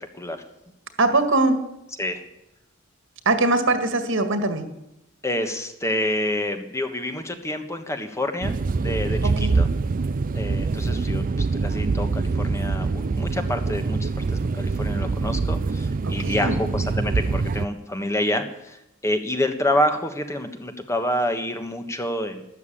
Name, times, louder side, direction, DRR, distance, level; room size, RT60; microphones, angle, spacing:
voice 1, 0.1-0.5 2.0-2.2 5.2-9.7 10.3-22.4, left 1 dB, 15° left, 7 dB, 1.4 m, -28 dB
voice 2, 1.0-1.6 3.3-4.6 9.4-9.5 16.2-16.5, right 2 dB, 65° right, 9 dB, 2.0 m, -21 dB
sound 1, 8.4-17.7, right 4 dB, 40° right, 0.5 m, -24 dB
13.0 x 12.0 x 8.7 m, 0.87 s
head